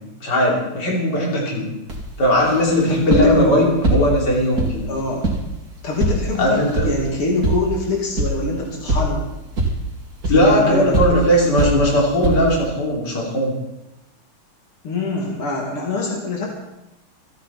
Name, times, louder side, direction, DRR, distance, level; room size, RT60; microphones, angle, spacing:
voice 1, 0.2-1.7 2.2-4.9 6.4-6.9 10.3-13.5, equal, 50° left, -3 dB, 4.0 m, -18 dB
Footsteps patting, 1.9-12.7, right 2 dB, 45° right, 2.8 m, -25 dB
voice 2, 2.9-3.8 4.9-5.3 5.8-9.2 10.3-11.3 11.7-11.8 14.8-16.5, left 2 dB, 90° left, -2 dB, 3.5 m, -24 dB
27.0 x 9.3 x 4.3 m, 0.93 s
omnidirectional pair, 2.3 m